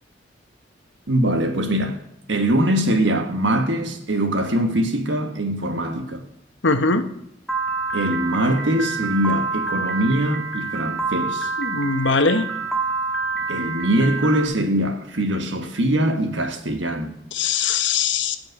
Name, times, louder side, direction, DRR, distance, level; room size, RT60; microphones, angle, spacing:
voice 1, 1.1-2.0 2.3-6.2 7.9-11.5 13.5-17.1, right 1 dB, 75° right, 1.5 m, -22 dB
voice 2, 6.6-7.1 11.6-12.5 17.3-18.4, left 4 dB, 75° left, 1.0 m, -21 dB
Piano, 7.5-14.5, right 4 dB, ahead, 1.7 m, -27 dB
15.0 x 5.3 x 8.1 m
head